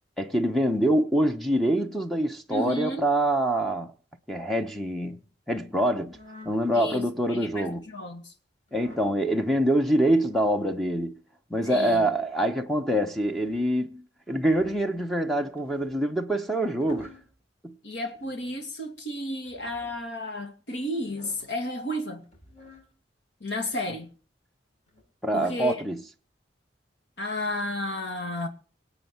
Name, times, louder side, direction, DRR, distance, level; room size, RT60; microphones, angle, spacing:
voice 1, 0.2-3.9 4.3-5.2 5.5-6.2 6.4-7.9 8.7-11.2 11.5-17.1 17.6-17.8 25.2-26.0, right 1 dB, ahead, 0.9 m, -25 dB
voice 2, 2.5-3.1 6.7-7.0 7.3-8.3 11.7-12.1 17.8-22.3 23.4-24.1 25.3-25.7 27.2-28.5, left 1 dB, 70° left, 2.4 m, -32 dB
sound 1, 6.0-6.6 7.3-7.8 8.7-9.1 10.1-10.5 11.6-12.1 13.2-13.6 14.3-14.9 15.6-16.0 16.6-17.3 18.1-18.6 19.4-20.0 20.9-21.5 22.2-22.9 23.6-24.1 24.9-25.0, left 3 dB, 35° left, 7.5 m, -51 dB
24.5 x 8.1 x 4.5 m
head